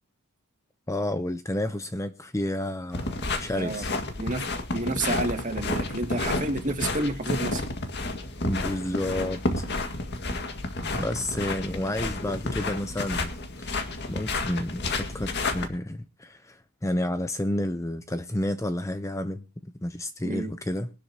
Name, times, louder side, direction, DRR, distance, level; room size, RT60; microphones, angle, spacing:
voice 1, 0.9-3.9 8.4-9.6 10.8-13.3 13.6-13.8 14.1-20.9, left 1 dB, 15° left, 0.7 m, -30 dB
sound 1, 2.9-15.7, left 2 dB, 50° left, 2.0 m, -31 dB
voice 2, 4.7-7.6 20.2-20.5, right 2 dB, 35° right, 2.4 m, -30 dB
22.0 x 12.0 x 2.9 m
head